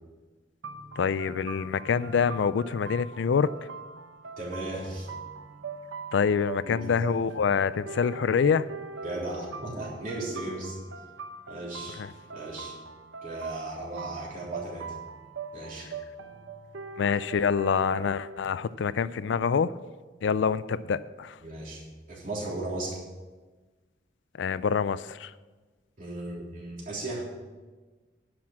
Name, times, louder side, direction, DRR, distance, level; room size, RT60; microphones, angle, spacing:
sound 1, 0.6-18.4, right 4 dB, 85° right, 0.9 m, -42 dB
voice 1, 1.0-3.5 6.1-8.7 12.0-12.1 17.0-19.7 20.2-21.4 24.4-25.3, left 6 dB, 70° left, 16 dB, 0.4 m, -26 dB
voice 2, 4.4-5.1 6.6-6.8 9.0-10.8 11.5-12.0 12.3-12.8 13.2-14.9 15.5-15.9 21.4-23.0 26.0-27.3, right 2 dB, 45° right, -5 dB, 3.5 m, -36 dB
10.5 x 6.1 x 7.4 m, 1.3 s
head